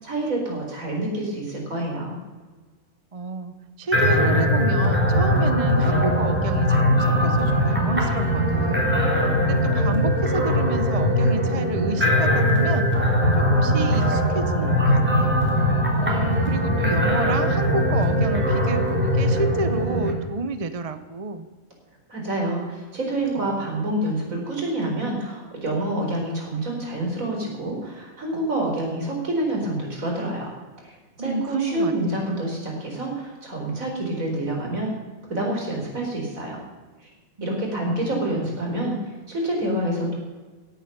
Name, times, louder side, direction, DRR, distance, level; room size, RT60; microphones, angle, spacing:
voice 1, 0.0-2.2 22.1-30.5 30.8-34.9 35.3-36.6 37.4-39.0 39.3-40.1, right 1 dB, 70° right, 0 dB, 4.8 m, -27 dB
voice 2, 3.1-15.4 16.0-21.5 31.2-32.3 37.4-38.2, right 3 dB, 30° right, 11 dB, 0.8 m, -30 dB
sound 1, 3.9-20.1, equal, 10° right, 3.3 m, -21 dB
17.0 x 9.1 x 6.7 m, 1.3 s
omnidirectional pair, 1.5 m